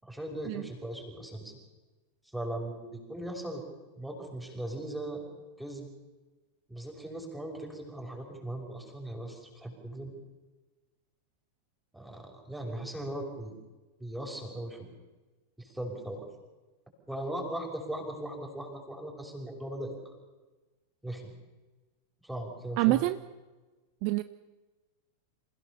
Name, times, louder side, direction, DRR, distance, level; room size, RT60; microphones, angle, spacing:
voice 1, 0.0-1.6 2.2-3.6 3.9-5.2 5.6-5.9 6.7-10.1 11.9-13.5 14.0-14.9 15.6-16.3 17.1-20.1 21.0-21.3 22.2-23.0, right 1 dB, 5° right, 1 dB, 6.2 m, -38 dB
voice 2, 22.8-23.2 24.0-24.2, right 20 dB, 45° right, 14 dB, 0.7 m, -26 dB
27.0 x 16.5 x 7.0 m, 1.2 s
figure-of-eight pair, 90°, 0 cm